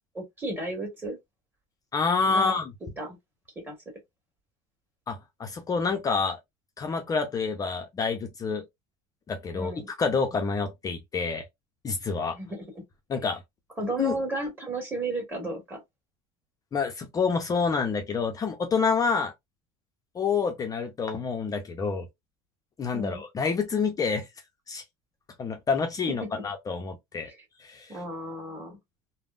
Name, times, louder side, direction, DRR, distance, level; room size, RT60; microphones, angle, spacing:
voice 1, 0.1-1.2 2.3-2.6 3.0-3.2 3.6-3.7 9.5-9.9 12.3-12.6 13.8-15.8 22.9-23.2 26.3-26.4 27.2-27.4 27.9-28.8, right 2 dB, 15° right, 1.6 m, -33 dB
voice 2, 1.9-2.7 5.1-6.4 6.8-8.7 9.3-11.5 11.8-12.4 13.1-13.4 14.0-14.2 16.7-19.3 20.1-22.1 22.8-24.3 24.7-24.8 25.4-27.3 27.6-28.0, left 5 dB, 25° left, 0.5 m, -28 dB
3.5 x 2.1 x 2.4 m
cardioid pair, 135°, 15 cm